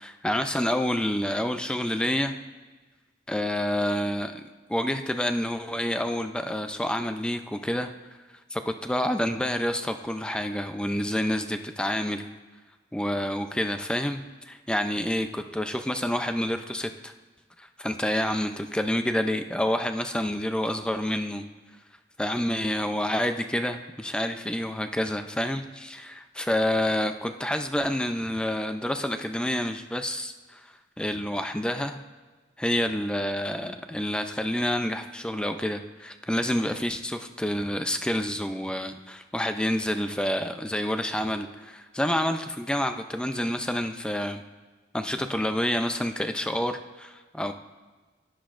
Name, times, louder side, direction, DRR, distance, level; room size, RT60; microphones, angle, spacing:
voice 1, 0.0-2.4 3.3-7.9 8.5-12.3 12.9-17.1 17.6-21.4 22.2-32.0 32.6-44.4 44.9-47.5, left 1 dB, 5° left, 7 dB, 0.4 m, -28 dB
17.0 x 10.5 x 2.5 m, 1.3 s
head